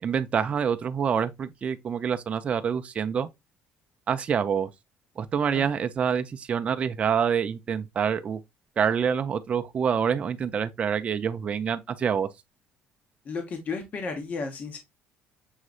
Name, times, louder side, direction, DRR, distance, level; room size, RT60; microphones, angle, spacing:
voice 1, 0.0-3.3 4.1-4.7 5.2-8.4 8.8-12.3, right 7 dB, 30° right, 0.4 m, -26 dB
voice 2, 13.2-14.8, left 4 dB, 40° left, 1.0 m, -33 dB
6.3 x 3.0 x 2.4 m
cardioid pair, 145°, 4 cm